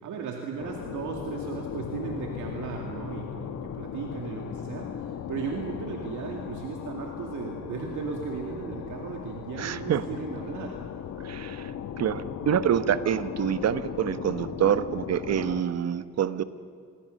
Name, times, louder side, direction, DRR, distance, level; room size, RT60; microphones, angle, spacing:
voice 1, 0.0-11.1, right 5 dB, 75° right, 1 dB, 2.3 m, -36 dB
sound 1, 0.6-15.6, left 8 dB, 70° left, 1.4 m, -37 dB
voice 2, 9.6-10.0 11.2-11.7 12.0-16.4, right 9 dB, 60° right, 13 dB, 1.2 m, -26 dB
28.0 x 21.5 x 6.5 m, 2.1 s
cardioid pair, 90°, 30 cm